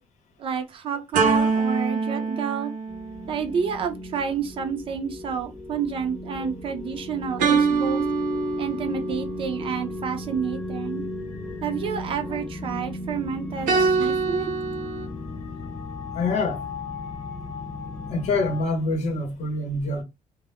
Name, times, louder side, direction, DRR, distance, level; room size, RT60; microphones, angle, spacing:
voice 1, 0.4-2.7 3.2-8.0 8.6-11.0 11.6-14.5, right 7 dB, 40° right, 0.4 m, -29 dB
sound 1, 1.1-3.7 7.4-9.2 13.7-15.1, right 5 dB, 85° right, 0.7 m, -24 dB
sound 2, 2.9-18.6, left 2 dB, 20° left, 0.6 m, -35 dB
voice 2, 16.1-16.6 18.1-20.0, left 2 dB, 60° left, 0.7 m, -26 dB
2.1 x 2.0 x 3.0 m
cardioid pair, 170°, 13 cm